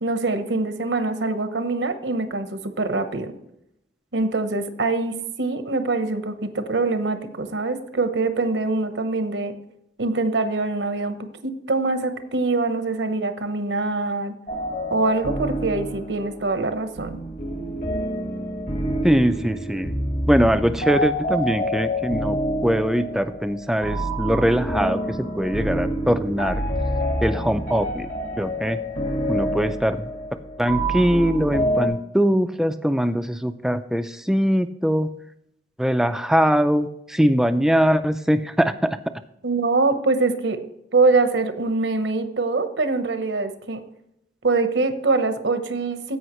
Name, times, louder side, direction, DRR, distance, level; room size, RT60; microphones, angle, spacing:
voice 1, 0.0-3.3 4.1-9.5 10.0-11.2 11.4-14.3 14.9-17.2 39.4-40.6 40.9-43.8 44.4-46.2, right 3 dB, 80° right, 9 dB, 0.9 m, -24 dB
sound 1, 14.5-31.9, equal, 45° left, 1.6 m, -27 dB
voice 2, 19.0-19.9 20.3-26.6 27.2-28.1 28.4-28.8 29.3-30.1 30.6-35.1 35.8-39.0, equal, 5° right, 10 dB, 0.4 m, -22 dB
15.5 x 5.5 x 3.1 m, 0.80 s
head